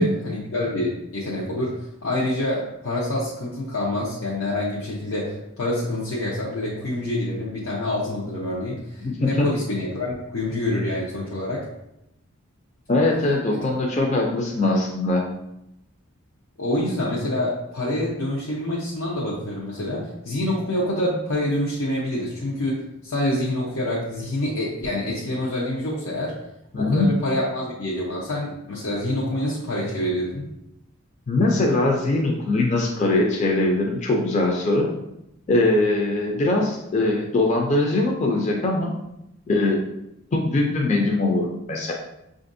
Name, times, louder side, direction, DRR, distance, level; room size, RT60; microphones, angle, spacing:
voice 1, 0.0-1.7 2.0-11.6 13.5-13.7 16.6-26.3 26.8-30.4, left 1 dB, 90° left, -5 dB, 0.8 m, -26 dB
voice 2, 9.0-9.5 12.9-15.2 26.7-27.1 31.3-34.9 35.5-38.9 39.5-39.8 40.3-41.9, left 2 dB, 35° left, -1 dB, 0.4 m, -21 dB
6.0 x 2.5 x 2.6 m, 0.84 s
head